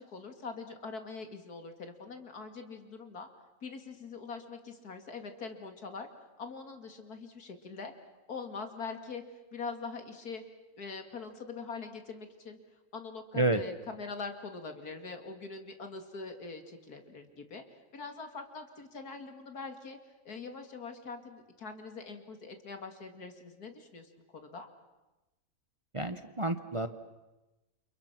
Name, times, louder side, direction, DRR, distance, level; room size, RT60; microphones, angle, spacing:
voice 1, 0.0-3.3 3.6-6.1 6.4-7.9 8.3-9.2 9.5-10.4 10.8-12.6 12.9-17.6 17.9-20.0 20.2-24.7, left 4 dB, 85° left, 6 dB, 2.9 m, -43 dB
voice 2, 25.9-26.9, right 2 dB, 25° right, 9 dB, 0.9 m, -29 dB
29.0 x 29.0 x 6.0 m, 1.1 s
omnidirectional pair, 1.6 m